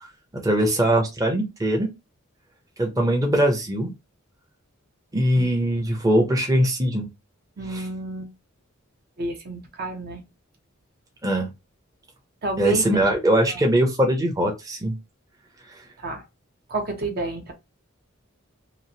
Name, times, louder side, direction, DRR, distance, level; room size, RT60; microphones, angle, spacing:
voice 1, 0.4-1.9 2.8-3.9 5.1-7.1 7.7-7.8 11.2-11.5 12.6-14.9, right 1 dB, 15° right, 0.6 m, -21 dB
voice 2, 7.6-8.3 9.2-10.2 12.4-13.0 13.5-13.6 16.0-16.3 16.7-17.5, right 2 dB, 50° right, 0.7 m, -30 dB
3.0 x 2.4 x 2.6 m
head